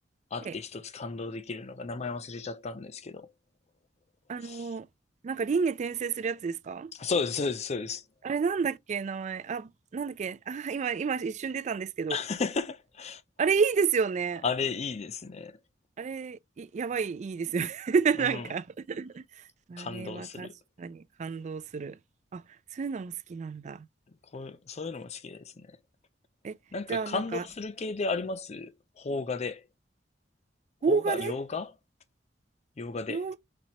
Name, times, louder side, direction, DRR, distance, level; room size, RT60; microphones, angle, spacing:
voice 1, 0.3-3.3 4.4-4.8 6.9-8.0 12.1-13.2 14.4-15.6 18.2-18.4 19.8-20.5 24.3-25.8 26.7-29.6 30.9-31.7 32.8-33.2, left 4 dB, 35° left, 0.5 m, -34 dB
voice 2, 4.3-4.9 5.2-6.9 8.2-12.2 13.4-14.4 16.0-19.4 19.7-20.5 20.8-22.0 22.3-22.4 22.7-23.9 26.4-26.5 26.9-27.4 30.8-31.3 33.1-33.3, right 5 dB, 40° right, 0.3 m, -30 dB
4.2 x 2.7 x 4.3 m
head